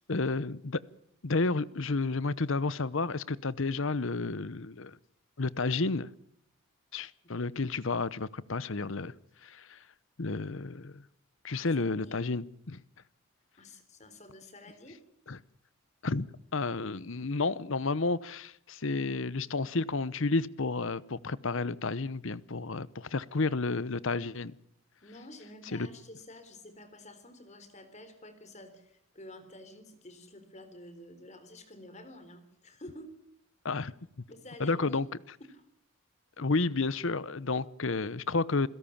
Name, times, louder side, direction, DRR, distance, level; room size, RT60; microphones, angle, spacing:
voice 1, 0.1-0.8 1.2-5.0 5.4-6.1 6.9-9.1 9.4-9.8 10.2-11.0 11.4-12.8 15.3-15.4 16.0-24.5 25.7-25.9 33.6-33.9 34.6-35.1 36.4-38.7, left 3 dB, 65° left, 19 dB, 0.9 m, -31 dB
voice 2, 7.0-7.3 11.6-12.2 13.6-15.0 25.0-33.1 34.3-35.0 35.4-35.6, left 1 dB, 30° left, 10 dB, 3.8 m, -50 dB
28.0 x 17.0 x 7.2 m, 0.73 s
head